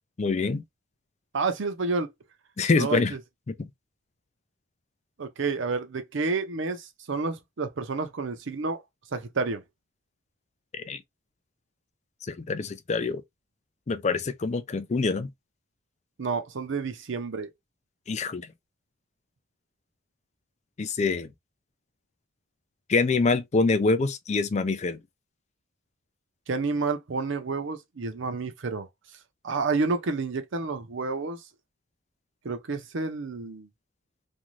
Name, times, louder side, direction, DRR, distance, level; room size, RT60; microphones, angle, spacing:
voice 1, 0.2-0.6 2.6-3.1 3.5-3.7 10.7-11.0 12.2-13.2 13.9-15.3 18.1-18.5 20.8-21.3 22.9-25.0, left 3 dB, 35° left, 0.4 m, -25 dB
voice 2, 1.3-2.1 2.8-3.2 5.2-8.8 9.1-9.6 16.2-17.5 26.5-28.9 29.4-31.4 32.4-33.7, right 4 dB, 65° right, 0.6 m, -29 dB
2.6 x 2.3 x 3.0 m
head